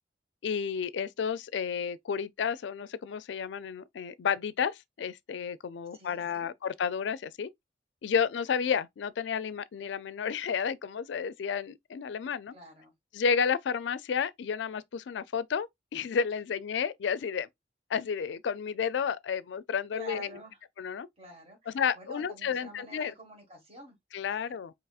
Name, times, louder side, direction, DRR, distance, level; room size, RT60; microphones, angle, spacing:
voice 1, 0.4-7.5 8.0-12.5 13.1-15.7 15.9-17.5 17.9-20.3 20.8-21.1 21.7-23.1 24.1-24.7, left 6 dB, 85° left, 0.4 m, -31 dB
voice 2, 5.9-6.5 12.5-12.9 19.9-20.6 21.2-24.0 24.5-24.6, right 1 dB, 35° right, 1.6 m, -48 dB
4.8 x 2.9 x 2.3 m
head